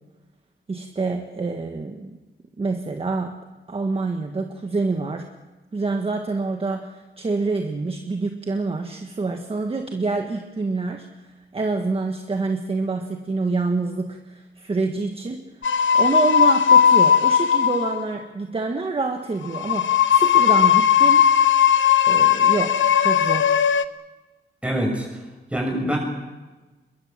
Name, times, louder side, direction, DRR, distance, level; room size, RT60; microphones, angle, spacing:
voice 1, 0.7-2.2 2.6-3.3 3.7-5.2 5.7-15.4 15.9-21.3 22.1-23.6, right 3 dB, 30° right, 4 dB, 1.5 m, -27 dB
sound 1, 15.6-18.1 19.4-23.8, left 8 dB, 75° left, 1.1 m, -17 dB
voice 2, 24.6-25.1 25.5-26.0, equal, 5° right, 1 dB, 7.1 m, -24 dB
27.0 x 22.0 x 7.5 m, 1.2 s
wide cardioid pair, 175°, 20 cm